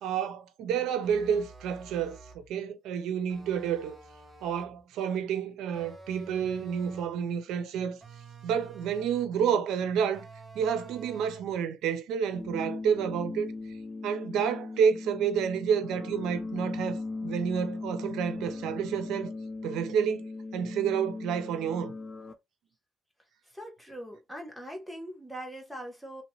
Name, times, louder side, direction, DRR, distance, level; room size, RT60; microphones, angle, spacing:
voice 1, 0.0-2.2 2.5-4.0 4.4-8.0 8.4-10.3 10.5-13.5 14.0-19.3 19.6-20.2 20.5-21.9, right 7 dB, 90° right, 0.6 m, -29 dB
sound 1, 1.0-2.5 3.3-4.8 5.7-7.2 8.0-9.4 10.1-11.6, right 3 dB, 30° right, 1.1 m, -49 dB
sound 2, 12.3-22.3, left 3 dB, 35° left, 0.8 m, -38 dB
voice 2, 23.4-26.2, right 1 dB, ahead, 1.3 m, -41 dB
3.1 x 2.9 x 3.0 m
cardioid pair, 90°, 0 cm